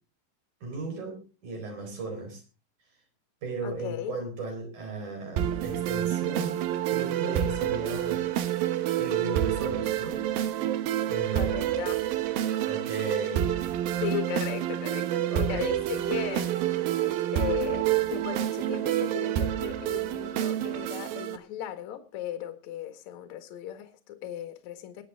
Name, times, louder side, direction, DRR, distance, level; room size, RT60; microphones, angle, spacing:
voice 1, 0.6-2.4 3.4-8.2 9.0-10.3 11.1-11.6 12.6-13.6 15.3-15.7, right 3 dB, 45° right, 5.5 m, -36 dB
voice 2, 3.6-4.1 11.3-12.0 14.0-16.6 17.0-25.0, left 11 dB, 55° left, 2.3 m, -36 dB
sound 1, 5.4-21.4, right 12 dB, 70° right, 2.4 m, -28 dB
20.5 x 8.3 x 3.6 m
omnidirectional pair, 5.1 m